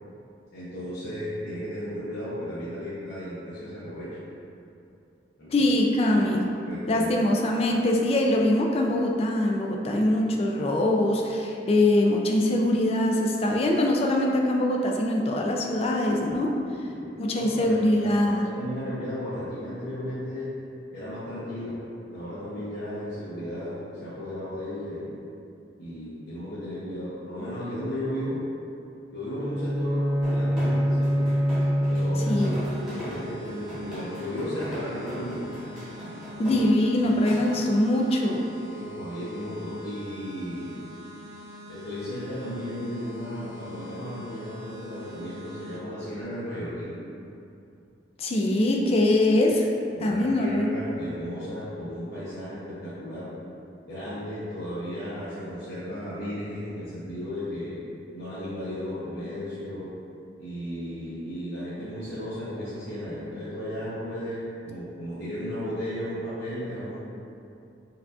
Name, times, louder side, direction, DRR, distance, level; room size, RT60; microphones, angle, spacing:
voice 1, 0.5-4.1 5.4-5.7 6.1-6.2 6.7-7.1 16.9-20.5 20.9-21.8 22.1-25.1 25.8-28.4 29.1-31.3 31.9-32.6 32.8-35.5 37.0-37.5 38.7-40.8 41.7-47.0 49.9-53.3 53.9-57.8 58.1-59.9 60.4-67.0, equal, 65° left, -13 dB, 0.8 m, -35 dB
voice 2, 5.5-6.4 6.9-16.5 17.2-18.5 32.3-32.5 36.4-38.5 48.2-49.7 50.0-50.7, left 1 dB, 35° left, 1 dB, 0.3 m, -23 dB
Bowed string instrument, 29.2-33.0, equal, 50° right, 1.3 m, -25 dB
sound 1, 30.2-37.6, equal, 5° right, 1.1 m, -39 dB
sound 2, 32.3-45.8, left 1 dB, 80° right, 1.0 m, -45 dB
4.6 x 2.5 x 2.4 m, 2.6 s
head